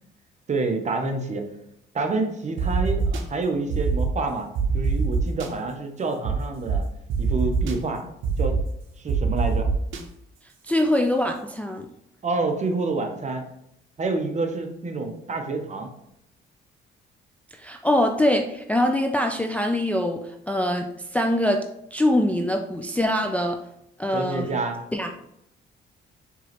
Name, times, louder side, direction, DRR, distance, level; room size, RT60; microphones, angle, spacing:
voice 1, 0.5-1.5 1.9-4.5 4.7-6.8 7.2-8.0 8.4-8.6 9.0-9.7 12.2-13.4 14.0-15.9 24.1-24.8, right 3 dB, 35° right, 4 dB, 0.8 m, -28 dB
sound 1, 2.6-3.2 3.7-4.1 4.6-5.5 6.2-6.3 6.7-6.8 7.1-7.7 8.2-8.6 9.1-10.0, right 4 dB, 80° right, 0.7 m, -23 dB
voice 2, 10.6-11.9 17.6-21.7 21.9-23.6 24.0-24.5 24.9-25.1, left 1 dB, 5° left, 3 dB, 0.3 m, -23 dB
4.5 x 3.1 x 2.9 m, 0.76 s
cardioid pair, 90°, 20 cm